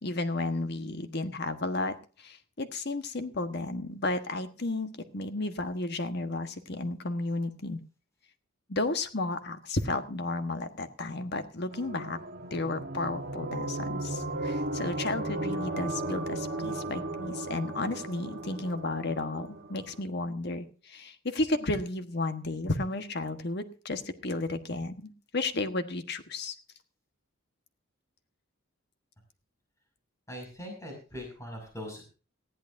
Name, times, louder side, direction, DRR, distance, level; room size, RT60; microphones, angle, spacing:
voice 1, 0.0-7.8 8.7-12.2 12.5-26.5, left 2 dB, 55° left, 8 dB, 1.4 m, -33 dB
sound 1, 11.7-20.0, right 2 dB, 50° right, 1.4 m, -35 dB
voice 2, 30.3-32.0, equal, 15° left, 0 dB, 6.1 m, -41 dB
19.5 x 14.5 x 2.7 m, 0.36 s
head